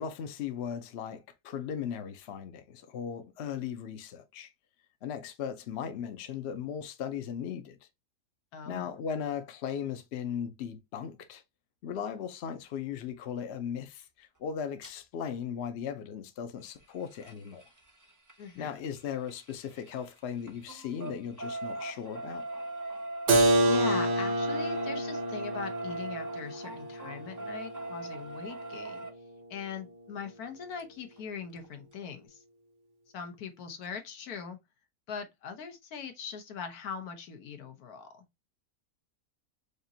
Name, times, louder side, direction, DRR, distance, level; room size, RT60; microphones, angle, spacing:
voice 1, 0.0-4.5 5.0-7.8 8.7-11.4 11.8-17.6 18.6-22.5, left 8 dB, 55° left, 0.8 m, -37 dB
voice 2, 8.5-8.9 18.4-18.7 23.6-29.1 29.5-32.4 33.1-34.6 35.1-38.2, left 6 dB, 85° left, 1.4 m, -41 dB
sound 1, 14.8-14.9 16.6-20.1 20.4-29.1 30.8-30.9 31.2-31.3 31.6-31.7, right 2 dB, 25° right, 0.4 m, -41 dB
Keyboard (musical), 23.3-28.9, right 1 dB, 60° right, 1.1 m, -29 dB
5.0 x 2.5 x 2.7 m
omnidirectional pair, 1.5 m